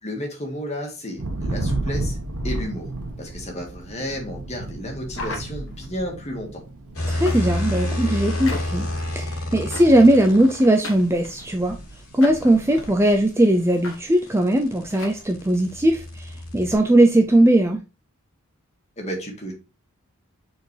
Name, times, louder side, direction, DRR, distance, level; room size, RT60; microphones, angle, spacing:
voice 1, 0.0-2.2 2.4-2.9 3.2-6.6 19.0-19.5, equal, 30° left, 1 dB, 2.0 m, -32 dB
Thunder, 1.2-14.1 14.4-15.0 15.3-16.8, right 2 dB, 90° right, 1.5 m, -34 dB
sound 1, 5.1-6.0 7.3-7.7 8.4-8.9 9.7-10.2 10.8-11.7 12.2-12.9 13.8-14.0 14.3-14.4 14.9-15.2, left 2 dB, 65° left, 1.4 m, -36 dB
sound 2, 6.9-10.8 13.1-16.7, left 1 dB, 90° left, 2.4 m, -29 dB
voice 2, 7.1-8.9 9.1-11.8 12.1-17.8, right 1 dB, 10° right, 4 dB, 0.5 m, -19 dB
6.9 x 4.5 x 3.3 m, 0.30 s
head